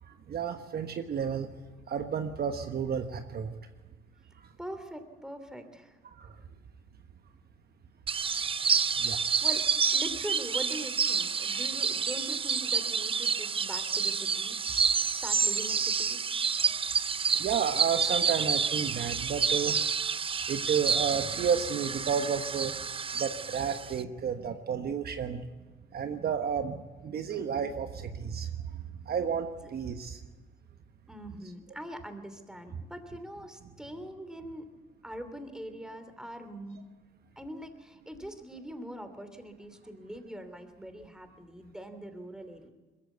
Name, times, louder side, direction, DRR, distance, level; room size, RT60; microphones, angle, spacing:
voice 1, 0.0-1.5 1.9-3.5 4.4-4.5 6.0-6.4 9.0-9.3 12.1-12.3 16.6-16.8 17.4-19.9 20.5-22.8 23.1-25.4 25.9-30.2 32.7-32.8, right 7 dB, 50° right, 7 dB, 1.3 m, -32 dB
voice 2, 4.6-6.0 9.4-9.7 9.9-14.6 15.2-16.2 29.6-29.7 31.1-34.7 35.0-36.8 37.4-42.7, equal, 5° right, 8 dB, 3.0 m, -42 dB
sound 1, 8.1-24.0, right 6 dB, 25° right, 0.6 m, -29 dB
21.5 x 14.5 x 8.2 m, 1.3 s
supercardioid pair, 65°, 21 cm